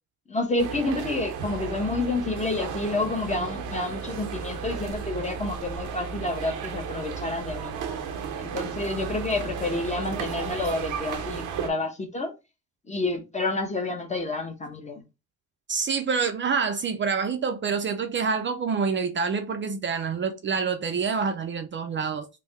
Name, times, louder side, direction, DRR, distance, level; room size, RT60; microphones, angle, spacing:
voice 1, 0.3-7.8 8.4-12.3 12.9-15.0, left 2 dB, 25° left, 1.0 m, -29 dB
sound 1, 0.6-11.7, right 6 dB, 90° right, 0.7 m, -34 dB
voice 2, 15.7-22.3, right 5 dB, 40° right, 0.5 m, -27 dB
3.5 x 2.2 x 3.3 m
cardioid pair, 90°, 30 cm